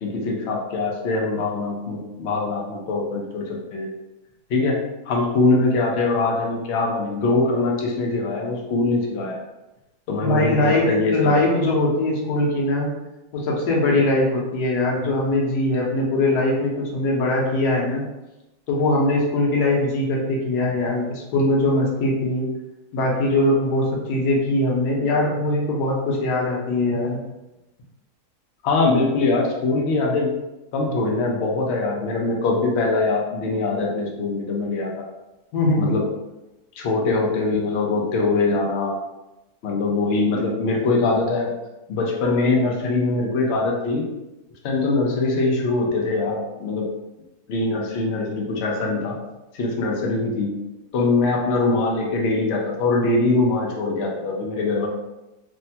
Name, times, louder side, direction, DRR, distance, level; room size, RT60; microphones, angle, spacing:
voice 1, 0.0-3.9 4.5-4.8 5.0-9.4 10.1-11.3 28.6-30.3 30.7-35.0 35.8-36.0 36.7-39.0 39.6-41.5 41.9-44.1 44.6-46.9 47.5-49.2 49.5-50.5 50.9-54.9, left 3 dB, 65° left, -1 dB, 0.7 m, -22 dB
voice 2, 10.2-12.9 13.3-18.0 18.7-22.5 22.9-27.2 35.5-35.9, left 1 dB, 85° left, -2 dB, 1.3 m, -21 dB
3.2 x 2.1 x 2.7 m, 0.98 s
omnidirectional pair, 1.7 m